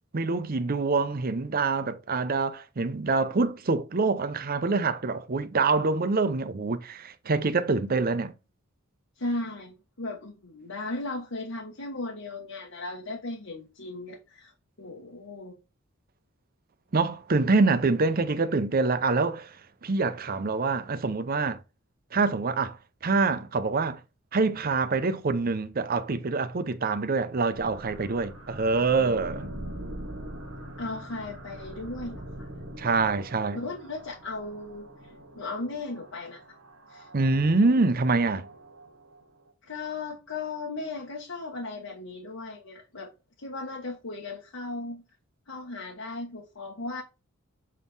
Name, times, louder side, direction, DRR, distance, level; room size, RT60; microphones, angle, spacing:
voice 1, 0.1-8.3 16.9-19.6 19.8-21.6 22.1-22.8 23.0-24.0 24.3-29.5 32.8-33.6 37.1-38.5, right 3 dB, 45° right, 0.6 m, -25 dB
voice 2, 9.2-14.5 14.8-15.6 30.8-32.5 33.5-36.4 36.9-37.1 39.6-43.1 43.4-45.0 45.5-47.0, left 2 dB, 85° left, 1.4 m, -36 dB
sound 1, 27.5-39.5, right 1 dB, 80° right, 1.4 m, -43 dB
7.5 x 3.6 x 4.0 m
head